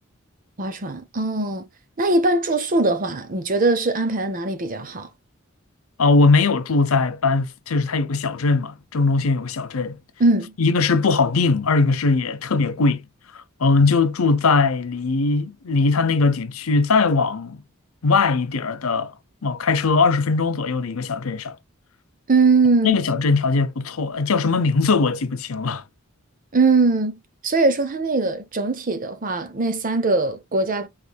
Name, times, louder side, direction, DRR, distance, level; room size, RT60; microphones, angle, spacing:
voice 1, 0.6-1.7 2.0-5.1 10.2-10.5 22.3-23.0 26.5-30.9, right 3 dB, 40° right, 0.8 m, -21 dB
voice 2, 6.0-10.0 10.6-13.0 13.6-17.6 18.0-19.1 19.4-21.5 22.8-25.8, left 4 dB, 85° left, 0.7 m, -20 dB
5.0 x 3.2 x 2.3 m
head